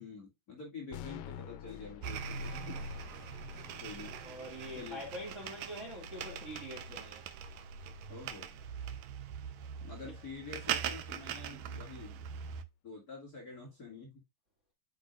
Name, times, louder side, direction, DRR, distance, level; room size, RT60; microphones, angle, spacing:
voice 1, 0.0-2.8 3.8-4.2 4.7-5.1 8.1-8.5 9.8-12.3 12.8-14.1, left 4 dB, 30° left, 2.2 m, -47 dB
sound 1, 0.9-8.9, left 10 dB, 85° left, 2.4 m, -52 dB
sound 2, 2.0-12.6, right 7 dB, 75° right, 1.8 m, -41 dB
voice 2, 4.2-7.2 10.0-10.1, equal, 25° right, 1.9 m, -44 dB
8.6 x 6.1 x 2.4 m
omnidirectional pair, 3.9 m